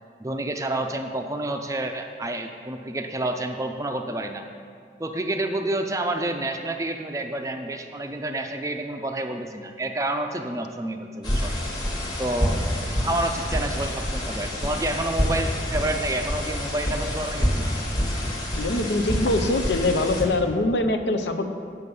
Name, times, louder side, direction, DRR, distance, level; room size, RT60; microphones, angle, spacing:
voice 1, 0.2-4.4 5.0-11.5 12.2-12.8 13.0-17.8, right 1 dB, 20° right, 5 dB, 0.4 m, -29 dB
sound 1, 11.2-20.2, equal, 25° left, 1.2 m, -27 dB
voice 2, 18.6-21.5, left 2 dB, 80° left, 7 dB, 0.6 m, -23 dB
8.3 x 6.9 x 5.4 m, 2.2 s
head